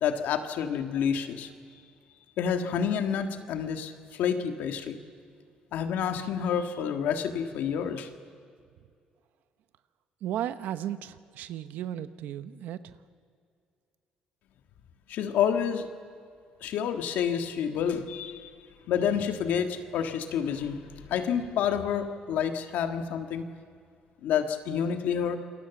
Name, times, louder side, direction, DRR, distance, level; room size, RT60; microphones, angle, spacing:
voice 1, 0.0-1.5 2.4-5.0 5.7-8.1 15.1-15.9 16.6-18.5 18.9-23.5 24.2-25.4, left 8 dB, 80° left, 6 dB, 1.8 m, -29 dB
voice 2, 10.2-13.0, right 11 dB, 80° right, 12 dB, 0.9 m, -35 dB
27.5 x 21.5 x 7.2 m, 2.3 s
cardioid pair, 110°, 3 cm